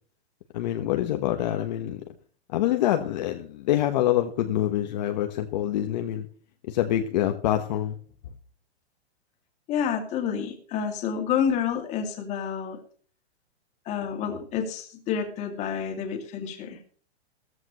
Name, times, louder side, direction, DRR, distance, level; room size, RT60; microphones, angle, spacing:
voice 1, 0.5-2.0 2.5-6.3 6.7-7.9, left 12 dB, 40° left, 5 dB, 1.3 m, -26 dB
voice 2, 9.7-12.8 13.9-16.8, left 7 dB, 20° left, 5 dB, 2.4 m, -29 dB
15.5 x 14.5 x 3.1 m, 0.43 s
hypercardioid pair, 165°, 33 cm